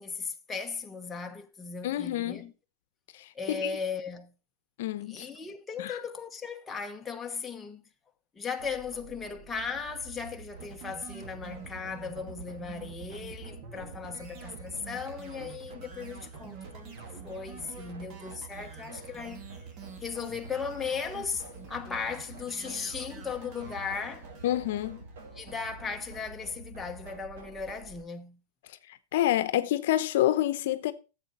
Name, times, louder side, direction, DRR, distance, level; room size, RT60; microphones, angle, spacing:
voice 1, 0.0-2.5 3.3-4.3 5.1-7.8 8.3-16.9 17.2-19.4 20.0-24.3 25.3-28.4, left 5 dB, 15° left, 1.0 m, -37 dB
voice 2, 1.8-2.4 3.1-3.7 4.8-5.2 5.8-6.0 24.4-25.0 29.1-30.9, left 13 dB, 65° left, 0.8 m, -28 dB
sound 1, 8.6-28.0, right 3 dB, 70° right, 4.5 m, -48 dB
sound 2, 10.6-25.9, right 5 dB, 40° right, 2.5 m, -48 dB
10.5 x 7.6 x 4.3 m
hypercardioid pair, 125°, 0 cm